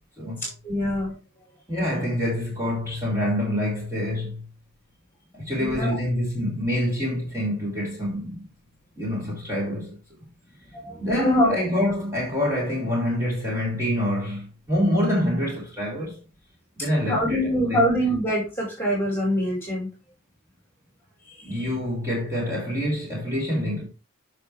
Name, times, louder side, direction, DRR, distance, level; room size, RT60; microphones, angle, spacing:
voice 1, 0.4-1.1 5.6-6.0 10.7-11.6 17.1-19.9 21.3-21.7, equal, 10° left, 4.9 m, -24 dB
voice 2, 1.7-4.4 5.3-8.5 9.0-10.0 11.0-16.2 16.8-17.9 21.4-23.8, left 1 dB, 15° right, 5.4 m, -26 dB
9.8 x 6.1 x 3.5 m
head